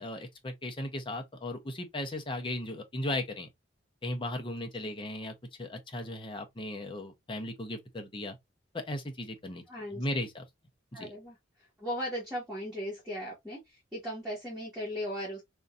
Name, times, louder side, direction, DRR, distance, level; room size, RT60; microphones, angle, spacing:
voice 1, 0.0-3.5 4.0-8.4 8.7-9.6 9.9-10.4 10.9-11.1, left 1 dB, 25° left, 0.7 m, -36 dB
voice 2, 9.7-10.0 10.9-11.4 11.8-13.6 13.9-15.4, equal, 5° right, 1.5 m, -37 dB
3.6 x 2.7 x 2.4 m
head